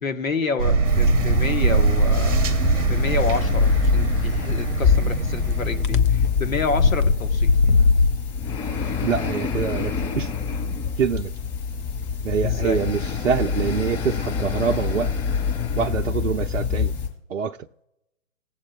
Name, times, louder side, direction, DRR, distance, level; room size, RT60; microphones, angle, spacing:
voice 1, 0.0-2.4 2.8-7.5 12.4-12.8, left 4 dB, 80° left, 1.3 m, -29 dB
sound 1, 0.6-5.8, right 4 dB, 25° right, 0.9 m, -22 dB
sound 2, 0.8-17.1, left 6 dB, 15° left, 3.9 m, -25 dB
sound 3, 5.8-6.1 6.6-8.1, left 4 dB, 40° left, 0.6 m, -18 dB
voice 2, 9.0-10.3 11.0-11.3 12.2-15.1 15.8-16.9 17.3-17.6, right 7 dB, 65° right, 0.6 m, -25 dB
19.0 x 7.5 x 2.3 m
hypercardioid pair, 145°, 40 cm